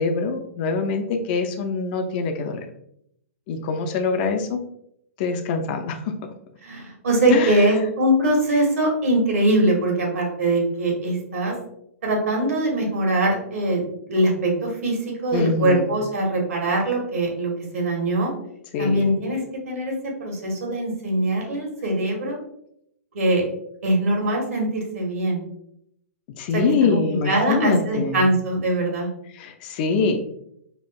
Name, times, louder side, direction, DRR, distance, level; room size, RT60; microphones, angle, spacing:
voice 1, 0.0-2.6 3.5-4.6 5.2-6.2 7.3-7.7 15.3-15.9 18.7-19.1 26.4-28.3 29.3-30.2, left 4 dB, 35° left, 5 dB, 0.4 m, -24 dB
voice 2, 6.6-11.5 12.0-15.0 15.2-18.3 18.8-19.4 19.7-22.4 23.1-23.5 23.8-25.4 26.5-26.6 26.9-29.1, right 1 dB, 65° right, 0 dB, 1.1 m, -22 dB
4.1 x 2.5 x 2.2 m, 0.73 s
figure-of-eight pair, 115°, 8 cm